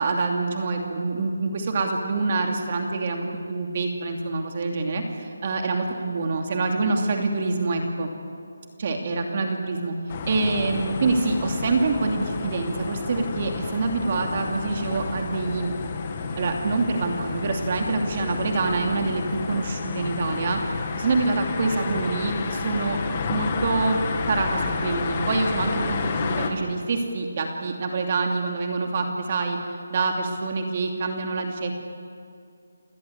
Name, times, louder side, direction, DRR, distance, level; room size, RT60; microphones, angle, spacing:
voice 1, 0.0-8.1 8.8-9.9 10.3-15.7 16.4-20.6 21.0-23.0 23.3-24.0 24.3-29.6 29.9-31.7, right 3 dB, 30° right, 2 dB, 2.7 m, -26 dB
sound 1, 10.1-26.5, left 4 dB, 25° left, 1.9 m, -30 dB
29.0 x 19.5 x 8.2 m, 2.5 s
figure-of-eight pair, 175°, 0 cm